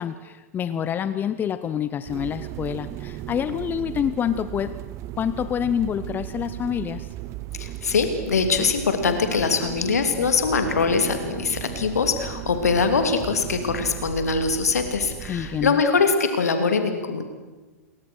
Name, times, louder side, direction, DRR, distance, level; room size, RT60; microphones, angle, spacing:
voice 1, 0.0-4.8 5.2-7.1 15.3-15.8, left 9 dB, 20° left, 14 dB, 0.9 m, -27 dB
sound 1, 2.1-15.7, right 14 dB, 35° right, 1.1 m, -36 dB
voice 2, 7.6-17.2, left 5 dB, 70° left, 7 dB, 2.9 m, -22 dB
28.5 x 23.0 x 6.4 m, 1.2 s
figure-of-eight pair, 105°, 9 cm